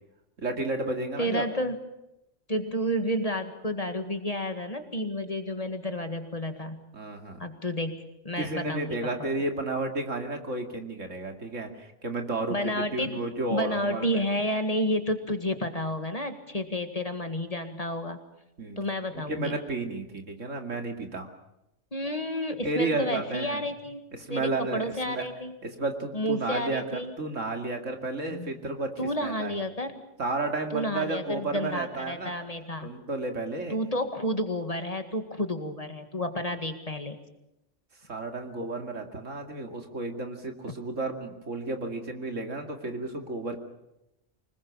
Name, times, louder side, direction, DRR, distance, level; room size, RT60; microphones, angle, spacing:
voice 1, 0.4-1.5 6.9-7.4 8.4-12.6 12.9-14.3 18.6-18.8 19.1-21.3 22.6-23.6 24.2-25.2 25.6-29.6 30.2-32.3 32.8-33.8 38.1-43.6, right 2 dB, 75° right, 5 dB, 2.8 m, -32 dB
voice 2, 1.2-1.8 2.5-6.8 7.4-8.0 8.2-9.3 12.5-13.2 13.5-18.2 18.8-19.6 21.9-24.0 24.3-25.6 26.1-27.1 28.3-28.5 29.0-30.0 30.7-32.9 33.7-37.2, equal, 30° left, 7 dB, 2.0 m, -31 dB
25.0 x 20.5 x 7.2 m, 0.88 s
omnidirectional pair, 1.3 m